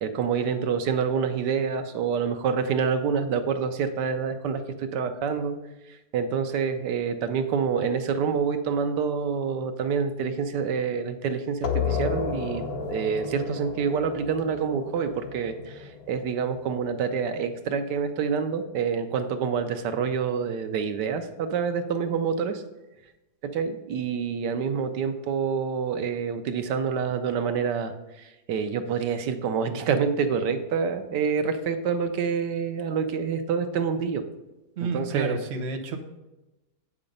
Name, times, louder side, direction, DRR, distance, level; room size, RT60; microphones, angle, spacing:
voice 1, 0.0-5.5 5.8-12.6 12.9-22.6 23.4-34.2 34.8-35.4, right 6 dB, 90° right, 8 dB, 1.4 m, -27 dB
sound 1, 11.6-17.0, left 5 dB, 65° left, 1.5 m, -32 dB
voice 2, 34.8-36.0, right 3 dB, 45° right, 3 dB, 1.1 m, -30 dB
8.6 x 6.0 x 5.3 m, 1.0 s
omnidirectional pair, 1.8 m